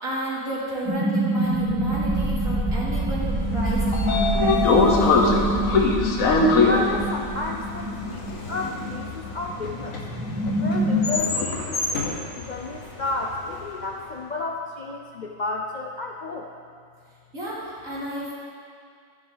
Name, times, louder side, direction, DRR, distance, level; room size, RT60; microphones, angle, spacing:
voice 1, 0.0-4.6 17.3-18.3, right 1 dB, 80° right, -8 dB, 3.4 m, -32 dB
sound 1, 0.9-11.1, right 1 dB, 10° right, 1.2 m, -26 dB
Train / Sliding door, 3.5-13.6, left 3 dB, 80° left, 1.5 m, -24 dB
voice 2, 6.6-10.0 10.6-16.5, left 2 dB, 55° left, 1 dB, 0.5 m, -32 dB
13.0 x 10.0 x 3.9 m, 2.3 s
omnidirectional pair, 1.4 m